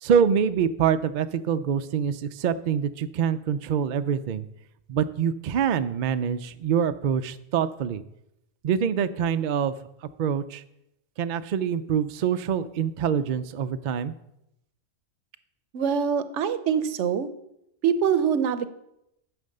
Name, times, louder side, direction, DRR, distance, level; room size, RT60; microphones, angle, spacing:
voice 1, 0.0-4.5 4.9-8.0 8.6-9.7 10.2-10.6 11.2-14.1, right 7 dB, 60° right, 11 dB, 0.5 m, -25 dB
voice 2, 15.7-17.3 17.8-18.7, right 7 dB, 75° right, 12 dB, 1.0 m, -24 dB
9.2 x 6.0 x 6.5 m, 0.82 s
omnidirectional pair, 1.2 m